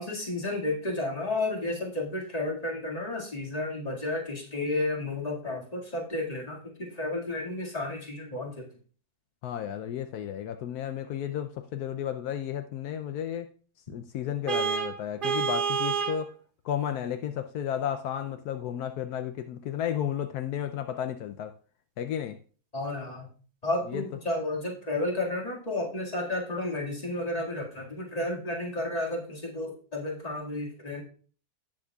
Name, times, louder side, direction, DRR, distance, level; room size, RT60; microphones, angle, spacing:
voice 1, 0.0-8.6 22.7-23.3 23.6-31.0, left 2 dB, 25° left, -2 dB, 2.0 m, -32 dB
voice 2, 9.4-13.5 13.9-16.3 16.6-21.5 22.0-22.4 23.9-24.0, left 9 dB, 80° left, 8 dB, 1.1 m, -33 dB
Vehicle horn car horn honking, 14.5-16.2, right 6 dB, 60° right, 0.5 m, -28 dB
16.5 x 6.2 x 2.3 m, 0.41 s
omnidirectional pair, 1.6 m